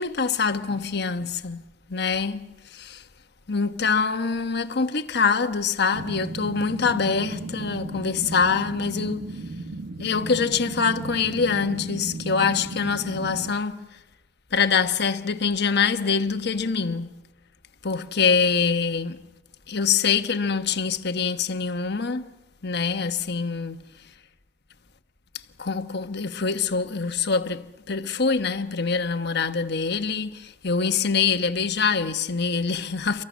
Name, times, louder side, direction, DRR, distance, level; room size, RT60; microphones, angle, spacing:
voice 1, 0.0-1.6 1.9-3.0 3.5-9.3 10.0-14.0 14.5-17.1 17.8-19.2 19.7-22.3 22.6-23.9 25.6-33.2, left 5 dB, 60° left, 1.2 m, -25 dB
sound 1, 5.9-13.5, right 2 dB, 85° right, 1.2 m, -35 dB
29.5 x 23.5 x 6.3 m
head